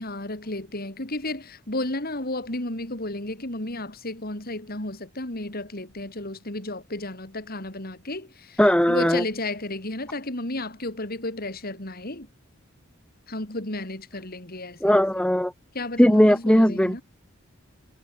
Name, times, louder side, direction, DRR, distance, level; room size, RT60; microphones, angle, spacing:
voice 1, 0.0-8.6 8.9-12.3 13.3-15.0 15.7-17.0, left 2 dB, 50° left, 4.5 m, -33 dB
voice 2, 8.6-9.2 14.8-15.5 16.0-17.0, equal, 5° left, 1.3 m, -18 dB
head